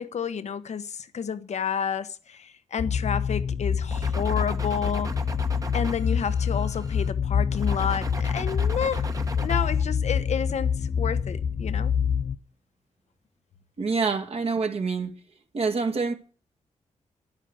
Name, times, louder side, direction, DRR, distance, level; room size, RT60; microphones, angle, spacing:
voice 1, 0.0-5.1 5.7-9.1 9.4-11.9, left 7 dB, 65° left, 1.1 m, -30 dB
sound 1, 2.8-12.4, left 7 dB, 45° left, 0.6 m, -26 dB
sound 2, 3.9-7.1 7.5-9.8, right 3 dB, 30° right, 1.4 m, -38 dB
voice 2, 13.8-15.2 15.5-16.1, right 4 dB, 55° right, 2.1 m, -26 dB
11.0 x 11.0 x 6.3 m
cardioid pair, 80°, 12 cm